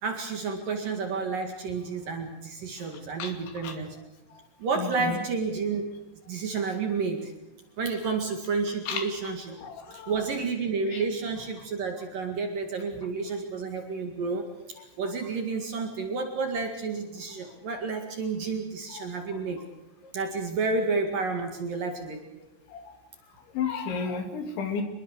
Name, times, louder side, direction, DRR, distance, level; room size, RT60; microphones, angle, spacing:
voice 1, 0.0-4.0 4.6-5.9 6.3-7.3 7.8-9.6 10.1-14.4 15.0-19.6 20.1-22.2, right 4 dB, 50° right, 4 dB, 3.1 m, -30 dB
voice 2, 4.8-5.2 8.9-9.1 9.6-10.1 10.9-11.0 18.9-19.1 22.7-22.8 23.5-24.8, left 5 dB, 65° left, 6 dB, 4.8 m, -32 dB
26.0 x 21.5 x 6.6 m, 0.95 s
omnidirectional pair, 6.0 m